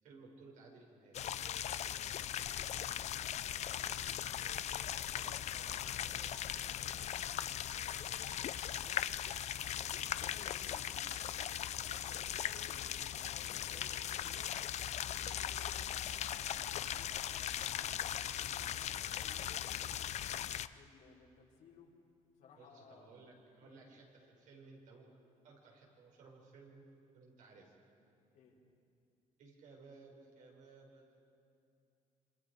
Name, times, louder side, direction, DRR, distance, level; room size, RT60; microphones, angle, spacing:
voice 1, 0.0-1.2 5.1-7.3 22.6-25.1 25.4-26.9 27.1-27.7 29.4-31.2, right 4 dB, 75° right, 0 dB, 5.0 m, -59 dB
sound 1, 1.1-20.7, left 10 dB, 55° left, 0.5 m, -39 dB
voice 2, 2.1-4.2 7.7-9.1 9.6-11.0 11.3-20.1 20.7-21.9 22.4-23.1 23.6-23.8 28.3-28.6, left 5 dB, 85° left, -3 dB, 3.8 m, -61 dB
27.0 x 26.0 x 4.8 m, 2.6 s
cardioid pair, 125°, 14 cm